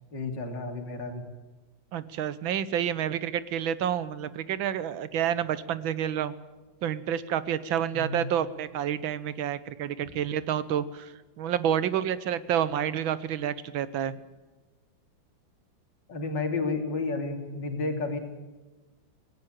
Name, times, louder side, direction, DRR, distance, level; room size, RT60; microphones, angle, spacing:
voice 1, 0.1-1.2 7.9-8.2 10.0-10.1 16.1-18.2, left 3 dB, 65° left, 4 dB, 3.4 m, -31 dB
voice 2, 1.9-6.3 6.8-14.2, right 9 dB, 90° right, 16 dB, 1.7 m, -29 dB
19.5 x 17.5 x 9.1 m, 1.2 s
omnidirectional pair, 2.1 m